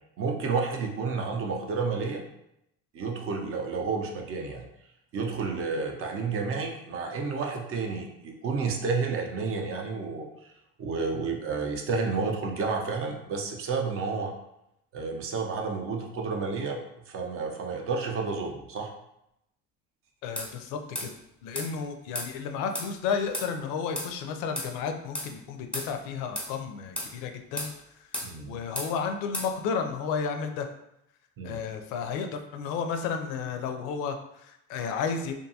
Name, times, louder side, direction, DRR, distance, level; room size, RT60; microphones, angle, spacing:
voice 1, 0.2-2.2 2.9-4.6 5.1-10.3 10.8-14.3 14.9-16.8 17.1-18.9 28.2-28.6 31.4-31.6, right 4 dB, 40° right, 2 dB, 0.5 m, -30 dB
voice 2, 20.2-21.1 21.4-30.7 31.4-35.3, left 6 dB, 70° left, 5 dB, 0.5 m, -32 dB
sound 1, 20.4-20.5 21.0-21.1 21.6-21.7 22.1-22.3 22.7-22.9 23.3-23.5 24.0-24.1 24.6-24.7 25.1-25.3 25.7-25.9 26.4-26.5 27.0-27.1 27.6-27.7 28.1-28.3 28.8-28.9 29.3-29.5, left 1 dB, 5° left, 0.5 m, -33 dB
2.6 x 2.3 x 2.7 m, 0.82 s
supercardioid pair, 105°, 33 cm